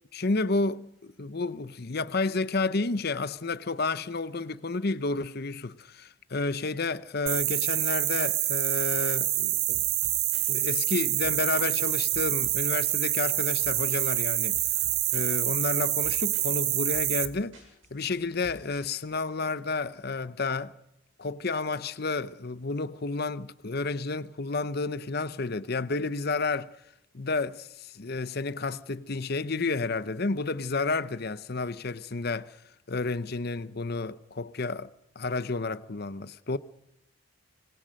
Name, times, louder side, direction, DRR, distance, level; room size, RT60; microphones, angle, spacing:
voice 1, 0.1-9.8 10.5-14.6 15.1-17.6 17.9-20.7 21.2-26.7 27.1-32.6 32.9-34.9 35.2-36.6, left 3 dB, 45° left, 0.8 m, -31 dB
sound 1, 7.3-17.3, right 15 dB, 85° right, 1.4 m, -27 dB
sound 2, 9.7-19.3, right 1 dB, 65° right, 7.7 m, -51 dB
25.5 x 20.0 x 6.5 m
head